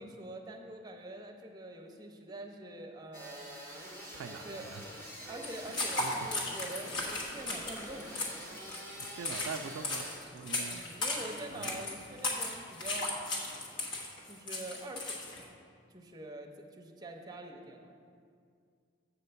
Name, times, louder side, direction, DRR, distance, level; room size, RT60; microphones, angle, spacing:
voice 1, 0.0-3.5 4.4-4.7 5.2-8.2 10.7-13.2 14.3-15.5 15.9-17.9, right 1 dB, 20° right, 1 dB, 0.6 m, -45 dB
sound 1, 3.1-10.2, equal, 10° left, 0.8 m, -47 dB
voice 2, 4.1-4.8 5.2-5.3 5.7-6.3 9.0-10.8 11.5-12.0, right 5 dB, 85° right, 10 dB, 0.3 m, -44 dB
sound 2, 5.4-15.4, left 2 dB, 70° left, 1.3 m, -36 dB
7.0 x 4.4 x 6.8 m, 2.2 s
head